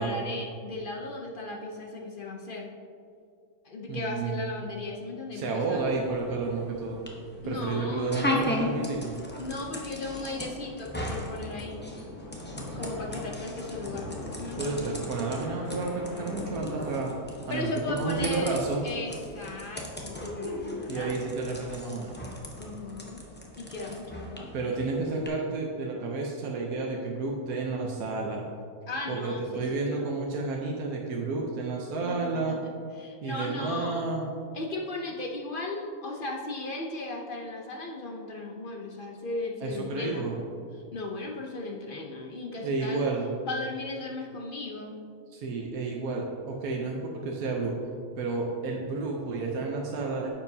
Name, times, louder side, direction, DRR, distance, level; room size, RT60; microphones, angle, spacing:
voice 1, 0.0-2.7 3.6-5.8 7.4-8.3 9.4-11.8 12.8-14.9 17.5-18.5 18.8-21.4 22.6-23.2 23.6-24.7 28.9-30.0 32.3-32.6 33.0-34.1 34.5-40.4 40.9-43.1 43.5-45.0, left 2 dB, 45° left, 1 dB, 0.7 m, -36 dB
voice 2, 3.9-4.4 5.3-7.0 7.4-9.1 14.6-17.1 17.5-18.8 20.9-22.3 24.5-28.4 29.1-32.6 33.2-34.2 39.6-40.4 42.6-43.3 45.3-47.7 48.2-50.3, right 3 dB, 75° right, -1 dB, 1.3 m, -31 dB
sound 1, 5.7-25.3, left 1 dB, 10° left, 0.7 m, -38 dB
sound 2, 10.0-18.8, left 2 dB, 80° left, 1.7 m, -42 dB
9.9 x 7.3 x 2.7 m, 2.3 s
omnidirectional pair, 1.6 m